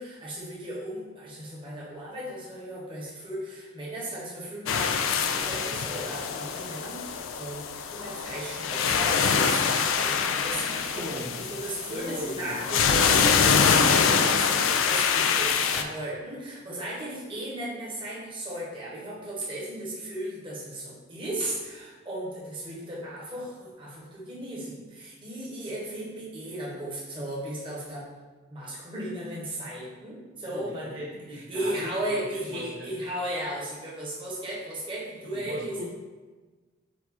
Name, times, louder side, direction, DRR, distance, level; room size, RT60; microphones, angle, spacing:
voice 1, 0.0-4.9 5.2-28.1 28.5-31.0 31.3-35.8, right 1 dB, 25° right, -6 dB, 1.0 m, -36 dB
sound 1, 4.7-15.8, left 6 dB, 80° left, 0.4 m, -25 dB
voice 2, 10.9-11.4 11.8-12.8 30.5-32.9 35.2-35.8, equal, 90° right, -6 dB, 1.3 m, -39 dB
4.6 x 2.5 x 4.2 m, 1.3 s
head